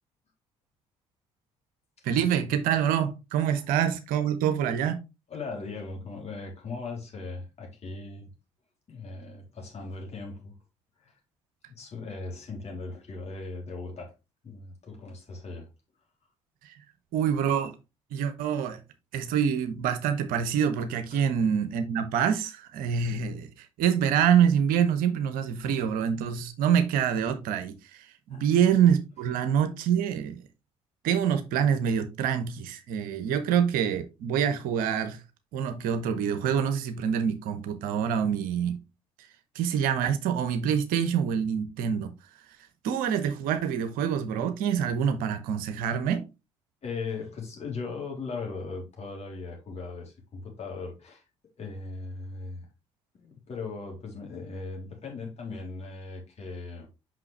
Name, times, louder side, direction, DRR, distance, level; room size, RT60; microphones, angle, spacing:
voice 1, 2.0-5.0 16.6-16.7 17.1-17.7 18.1-18.8 19.1-30.4 31.0-35.2 35.5-38.8 39.5-42.1 42.8-46.2, right 8 dB, 65° right, 1.0 m, -26 dB
voice 2, 5.3-8.3 8.9-10.5 11.0-11.2 11.7-14.1 14.4-15.7 21.1-21.2 28.3-28.6 46.8-51.2 51.6-52.7 53.1-56.9, left 3 dB, 45° left, 3.4 m, -38 dB
5.9 x 5.8 x 3.3 m
figure-of-eight pair, 45°, 16 cm